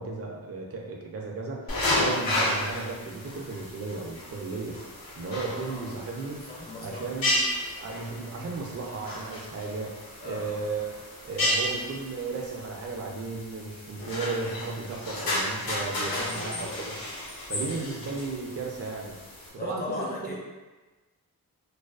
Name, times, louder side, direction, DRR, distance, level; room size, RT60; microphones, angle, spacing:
voice 1, 0.0-6.4 6.8-7.4 7.8-10.9 11.2-17.1 17.5-19.2 19.5-20.4, right 4 dB, 40° right, 0 dB, 0.5 m, -35 dB
sound 1, 1.7-19.5, left 1 dB, 65° left, 0.8 m, -33 dB
voice 2, 5.6-6.0 6.5-7.1 10.2-10.6 16.1-16.8 19.6-20.4, left 3 dB, 25° left, -3 dB, 0.5 m, -38 dB
2.4 x 2.3 x 2.3 m, 1.2 s
wide cardioid pair, 85°, 37 cm